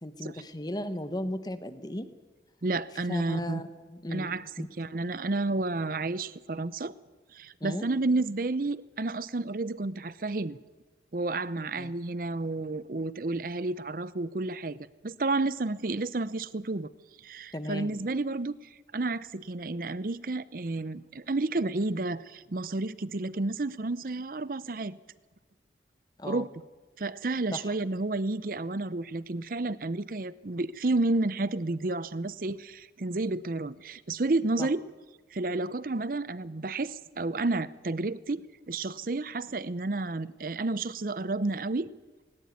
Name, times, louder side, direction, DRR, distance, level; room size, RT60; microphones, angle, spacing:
voice 1, 0.0-2.1 3.1-4.3 4.6-4.7 4.9-5.0 7.6-7.9 11.8-11.9 17.5-17.9 26.2-26.4 27.5-27.7 34.6-34.7, left 1 dB, 20° left, 11 dB, 1.0 m, -36 dB
voice 2, 2.6-3.6 4.1-4.5 4.8-6.9 7.3-10.6 11.1-14.8 15.0-16.9 17.2-18.5 18.9-25.0 26.2-26.5 27.0-34.8 35.3-38.4 38.7-41.9, right 2 dB, 50° right, 18 dB, 0.7 m, -31 dB
19.5 x 19.0 x 9.5 m, 1.3 s
head